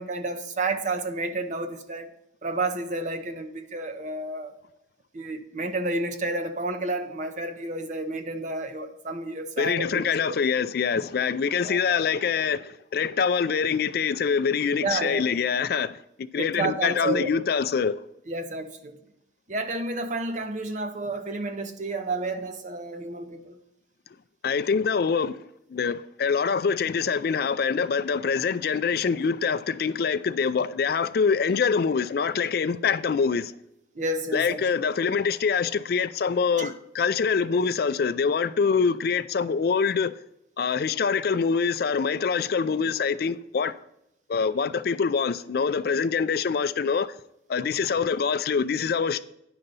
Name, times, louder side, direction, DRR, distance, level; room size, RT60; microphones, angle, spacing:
voice 1, 0.0-2.1 2.4-4.5 5.1-10.4 11.0-11.1 11.6-12.0 14.8-15.3 16.3-17.3 18.3-19.0 19.5-23.6 34.0-34.6 36.6-36.7, right 2 dB, 40° right, 0.6 m, -31 dB
voice 2, 9.6-16.0 16.3-18.0 24.4-25.4 25.7-33.5 34.3-40.1 40.6-43.7 44.3-47.1 47.5-49.2, left 6 dB, 55° left, 0.3 m, -25 dB
9.8 x 3.9 x 5.4 m
head